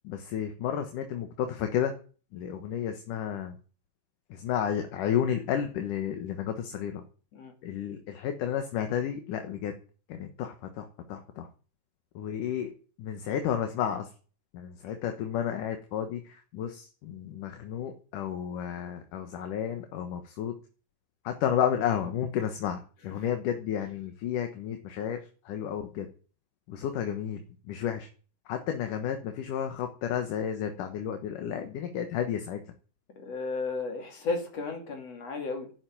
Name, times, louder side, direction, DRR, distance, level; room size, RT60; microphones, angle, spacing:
voice 1, 0.0-1.9 2.3-3.5 4.3-7.0 7.6-9.7 10.1-11.5 12.1-12.7 13.0-14.1 14.5-20.5 21.2-25.2 25.4-26.1 26.7-28.1 28.5-32.6, left 9 dB, 75° left, 2.9 m, -32 dB
voice 2, 33.2-35.7, left 3 dB, 50° left, 3.6 m, -34 dB
11.5 x 9.7 x 9.3 m
omnidirectional pair, 3.8 m